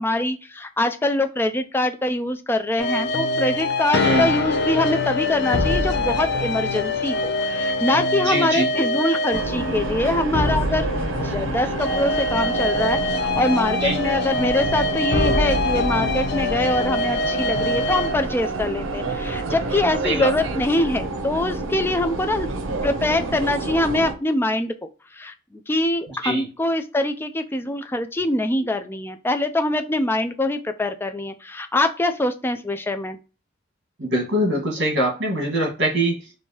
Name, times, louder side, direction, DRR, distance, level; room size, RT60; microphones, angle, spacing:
voice 1, 0.0-10.9 11.2-24.7 25.2-33.2, left 1 dB, 10° left, 7 dB, 0.3 m, -24 dB
sound 1, 2.8-18.3, left 2 dB, 55° left, 0.6 m, -24 dB
voice 2, 8.2-8.7 13.8-14.0 20.0-20.3 26.1-26.5 34.0-36.2, right 1 dB, 60° right, 1 dB, 1.5 m, -23 dB
sound 2, 9.3-24.1, right 2 dB, 85° right, 0.6 m, -29 dB
4.5 x 2.7 x 2.8 m, 0.34 s
head